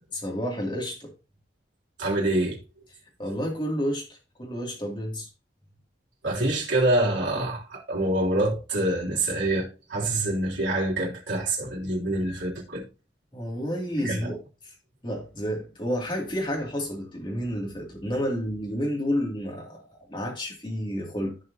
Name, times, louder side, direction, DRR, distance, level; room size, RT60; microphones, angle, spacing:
voice 1, 0.1-1.1 3.2-4.0 4.4-5.3 13.3-14.4 14.6-14.7 15.0-21.4, equal, 25° left, 2.5 m, -30 dB
voice 2, 2.0-2.6 6.2-12.9 14.0-14.3, right 1 dB, 75° right, 3.0 m, -26 dB
14.0 x 4.9 x 2.8 m
head